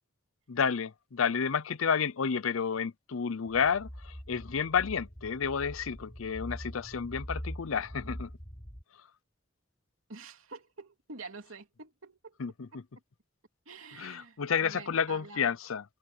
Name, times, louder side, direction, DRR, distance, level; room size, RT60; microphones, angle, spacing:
voice 1, 0.5-8.3 12.4-12.7 14.0-15.8, left 6 dB, 85° left, 0.6 m, -30 dB
sound 1, 3.5-8.8, equal, 25° left, 3.5 m, -43 dB
voice 2, 10.1-12.4 12.7-12.8 13.6-15.5, right 3 dB, 90° right, 3.0 m, -47 dB
open air
head